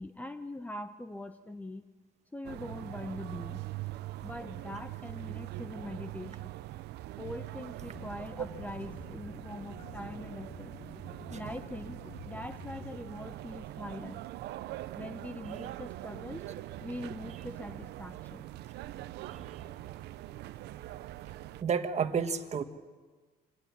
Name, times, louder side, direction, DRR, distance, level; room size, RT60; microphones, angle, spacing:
voice 1, 0.0-1.8 2.3-3.6 4.2-6.5 7.2-10.7 11.3-12.0 12.2-14.2 15.0-16.4 16.8-18.5, left 1 dB, 10° left, 9 dB, 0.9 m, -42 dB
sound 1, 2.4-21.6, right 15 dB, 80° right, 0.8 m, -43 dB
sound 2, 7.9-13.0, left 5 dB, 40° left, 1.5 m, -49 dB
voice 2, 19.2-19.6 21.6-22.6, right 6 dB, 40° right, 8 dB, 1.4 m, -32 dB
25.0 x 17.5 x 7.5 m, 1.4 s
cardioid pair, 110°, 17 cm